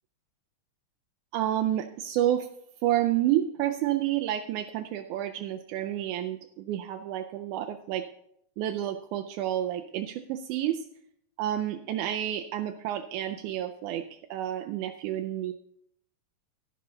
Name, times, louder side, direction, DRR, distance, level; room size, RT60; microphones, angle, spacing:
voice 1, 1.3-2.5 2.8-8.1 8.6-10.9 11.4-14.0 14.3-15.5, right 12 dB, 80° right, 4 dB, 1.9 m, -29 dB
12.0 x 11.0 x 3.9 m, 0.73 s
omnidirectional pair, 3.8 m